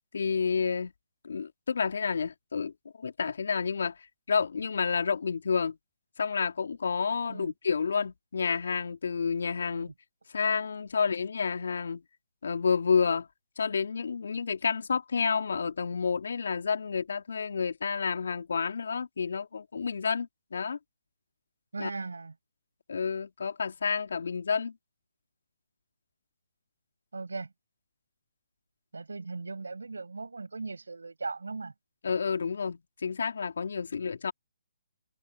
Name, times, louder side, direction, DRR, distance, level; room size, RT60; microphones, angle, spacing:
voice 1, 0.1-0.9 1.2-4.0 4.3-5.8 6.2-9.9 10.3-12.0 12.4-13.3 13.6-20.8 21.8-21.9 22.9-24.8 32.0-34.3, left 5 dB, 65° left, 2.2 m, -30 dB
voice 2, 21.7-22.3 27.1-27.5 28.9-31.7, right 3 dB, 80° right, 5.5 m, -38 dB
figure-of-eight pair, 145°, 0 cm